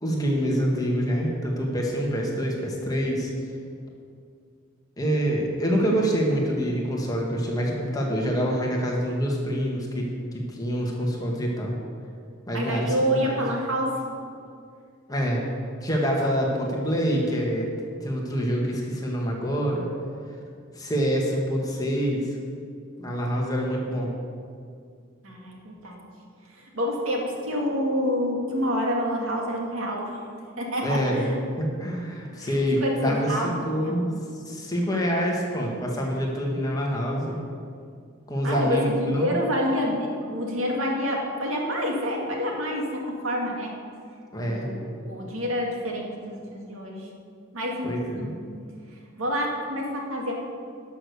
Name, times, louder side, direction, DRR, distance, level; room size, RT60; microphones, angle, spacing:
voice 1, 0.0-3.3 5.0-10.1 10.3-11.8 12.5-13.4 15.1-15.5 15.8-17.7 18.0-19.8 20.8-22.4 23.0-24.1 30.8-31.3 31.6-34.1 34.5-37.4 38.3-39.4 44.3-44.7 47.8-48.3, equal, 20° left, -2 dB, 1.7 m, -26 dB
voice 2, 12.5-14.0 25.2-26.0 26.6-30.2 30.6-31.4 32.4-33.9 38.4-43.7 44.4-47.1 47.5-47.9 48.2-48.3 49.2-50.3, equal, 80° right, -1 dB, 2.1 m, -28 dB
11.5 x 6.5 x 6.9 m, 2.3 s
head